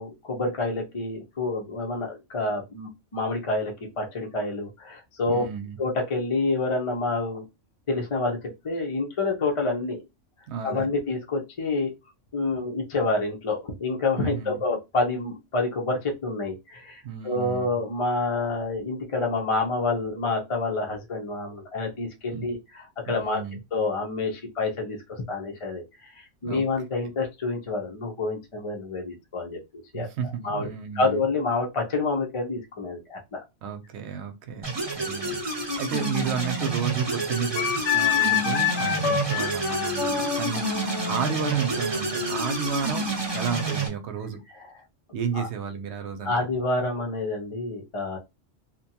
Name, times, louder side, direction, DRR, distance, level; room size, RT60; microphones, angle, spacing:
voice 1, 0.0-5.4 5.8-7.4 7.9-8.4 8.6-10.0 10.6-11.9 12.3-23.4 23.7-29.6 29.9-30.1 30.4-30.7 30.9-33.4 45.3-45.5 46.2-48.2, left 3 dB, 40° left, 0.5 m, -28 dB
voice 2, 5.3-5.8 10.5-10.9 14.2-14.6 17.0-17.7 22.3-22.4 23.1-23.6 26.4-26.6 29.9-31.2 33.6-43.1 43.3-44.4 45.1-46.5, right 7 dB, 70° right, 0.8 m, -32 dB
sound 1, 34.6-43.9, right 2 dB, 30° right, 0.5 m, -29 dB
Wind instrument woodwind instrument, 37.6-42.9, left 8 dB, 80° left, 1.0 m, -28 dB
2.7 x 2.2 x 2.7 m
omnidirectional pair, 1.3 m